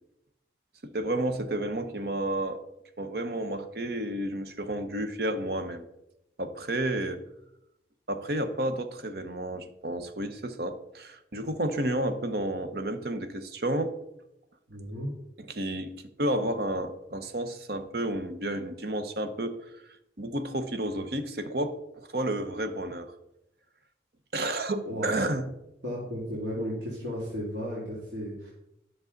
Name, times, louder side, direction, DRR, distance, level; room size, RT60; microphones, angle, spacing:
voice 1, 0.8-2.6 3.0-5.8 6.4-7.2 8.1-14.0 15.5-19.6 20.2-23.1 24.3-25.5, right 1 dB, 60° right, 8 dB, 0.9 m, -31 dB
voice 2, 14.7-15.1 24.9-25.2 25.8-28.5, equal, 80° right, -6 dB, 2.6 m, -34 dB
11.0 x 6.3 x 3.9 m, 0.84 s
head